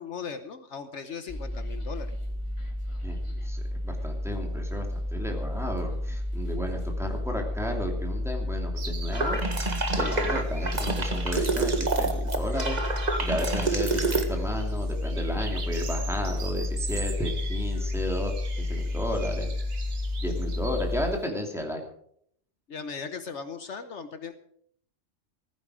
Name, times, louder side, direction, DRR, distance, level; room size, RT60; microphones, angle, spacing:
voice 1, 0.0-2.1 22.7-24.3, left 6 dB, 65° left, 9 dB, 1.3 m, -38 dB
sound 1, 1.3-21.1, left 2 dB, 25° left, 2.2 m, -31 dB
voice 2, 3.0-9.4 10.0-12.8 13.2-19.5 20.2-21.8, equal, ahead, 1 dB, 2.9 m, -33 dB
sound 2, 8.8-21.3, right 5 dB, 55° right, 1.6 m, -44 dB
sound 3, 9.1-14.2, right 3 dB, 35° right, 1.8 m, -28 dB
15.0 x 15.0 x 5.0 m, 0.66 s
omnidirectional pair, 1.3 m